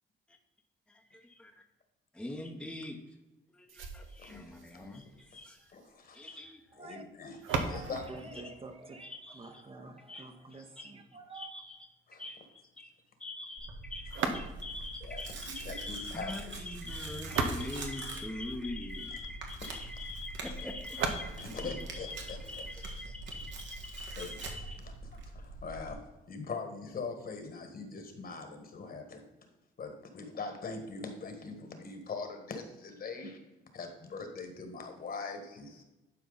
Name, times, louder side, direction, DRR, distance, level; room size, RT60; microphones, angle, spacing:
voice 1, 1.1-1.5 2.1-3.0 3.5-5.7 6.1-6.6 7.5-7.6 9.2-9.5 10.1-10.3 10.8-10.9 11.3-11.8 12.2-12.4 12.8-12.9 13.2-24.8, left 2 dB, 5° left, 2 dB, 0.9 m, -43 dB
sound 1, 3.7-9.7 14.1-14.9 16.9-18.9 20.9-22.9, right 4 dB, 85° right, 1.0 m, -39 dB
voice 2, 5.7-6.3 6.8-7.4 7.6-8.0 12.1-12.2 15.0-15.2 15.5-16.3 19.1-19.2 19.6-19.8 20.6-20.7 21.2-22.4 24.0-24.4 24.8-24.9 25.3-26.0 26.3-29.2 29.8-33.4 33.7-35.8, left 4 dB, 50° left, 6 dB, 1.6 m, -42 dB
voice 3, 6.7-7.0 7.6-11.5, right 3 dB, 30° right, 6 dB, 0.9 m, -47 dB
Tearing, 13.6-25.9, right 2 dB, 70° right, 1.7 m, -44 dB
11.0 x 4.6 x 4.0 m, 1.0 s
cardioid pair, 90°, 20 cm